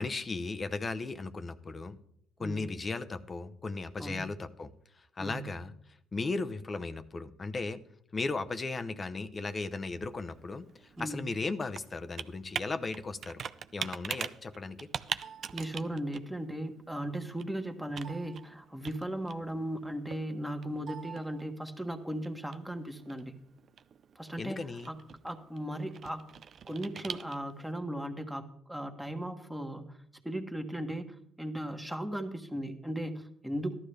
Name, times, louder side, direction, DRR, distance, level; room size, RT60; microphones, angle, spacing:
voice 1, 0.0-2.0 2.4-5.7 6.1-7.8 8.1-13.4 13.7-14.9 24.4-24.9, left 3 dB, 35° left, 10 dB, 0.9 m, -36 dB
voice 2, 2.4-2.7 4.0-4.2 5.2-5.4 11.0-11.3 15.5-23.4 24.1-25.0 25.2-26.2 26.7-30.0 30.2-33.7, right 1 dB, 5° right, 5 dB, 1.4 m, -37 dB
Computer keyboard, 9.4-27.7, right 7 dB, 55° right, 0.5 m, -44 dB
14.0 x 12.0 x 3.4 m, 0.72 s
supercardioid pair, 60°, 0 cm